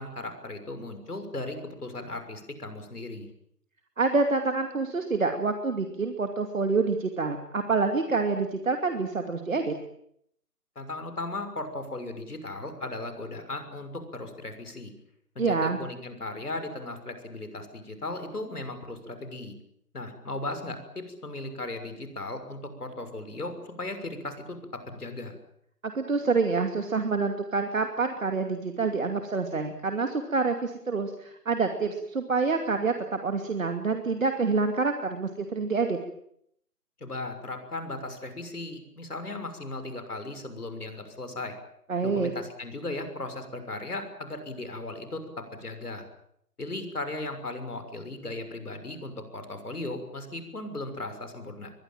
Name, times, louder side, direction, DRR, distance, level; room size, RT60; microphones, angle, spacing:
voice 1, 0.0-3.3 10.7-14.9 15.3-19.5 19.9-25.3 37.0-41.6 42.0-46.1 46.6-51.7, left 2 dB, 70° left, 8 dB, 6.5 m, -37 dB
voice 2, 4.0-9.7 15.4-15.8 25.8-36.0 41.9-42.3, right 4 dB, 55° right, 6 dB, 2.7 m, -27 dB
22.5 x 22.5 x 9.1 m, 0.72 s
figure-of-eight pair, 150°, 47 cm